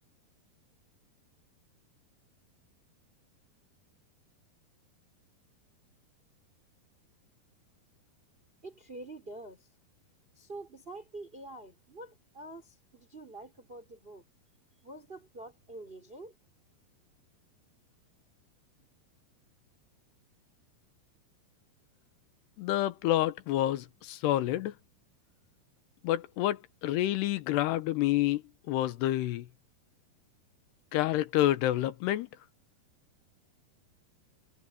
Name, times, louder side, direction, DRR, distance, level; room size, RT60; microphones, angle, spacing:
voice 1, 8.6-9.7 10.3-14.2 14.8-16.3, right 2 dB, 15° right, 4.4 m, -46 dB
voice 2, 22.6-24.7 26.0-28.4 28.7-29.5 30.9-32.3, left 14 dB, 90° left, 3.2 m, -28 dB
omnidirectional pair, 4.7 m